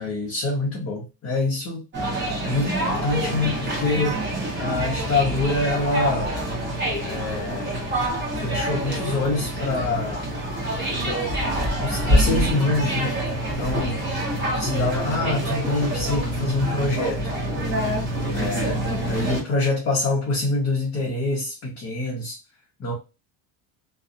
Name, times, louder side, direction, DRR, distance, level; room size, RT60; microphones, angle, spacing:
voice 1, 0.0-1.8 2.4-4.3 4.6-6.3 7.0-7.8 8.4-10.2 11.0-11.4 11.8-13.2 13.6-14.0 14.5-17.3 18.3-22.4 22.8-22.9, left 2 dB, 30° left, -3 dB, 0.6 m, -25 dB
sound 1, 1.9-19.4, right 1 dB, 25° right, 0.8 m, -26 dB
2.6 x 2.0 x 2.4 m, 0.28 s
cardioid pair, 155°, 48 cm